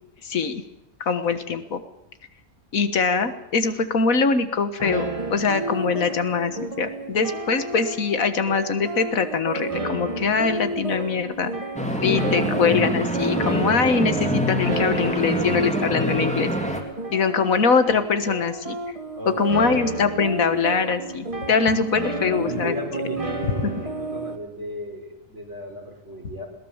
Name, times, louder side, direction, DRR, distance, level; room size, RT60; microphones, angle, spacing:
voice 1, 0.2-0.6 1.0-1.8 2.7-11.5 12.0-16.5 17.1-18.8 19.3-22.8 23.6-23.7, left 5 dB, 90° left, 10 dB, 1.9 m, -23 dB
sound 1, 4.8-24.4, right 2 dB, 25° right, 1.4 m, -31 dB
sound 2, 11.8-16.8, equal, 5° left, 2.7 m, -25 dB
voice 2, 19.2-19.8 22.4-26.5, equal, 60° right, 2 dB, 4.4 m, -35 dB
21.0 x 18.5 x 7.2 m, 0.89 s
omnidirectional pair, 1.4 m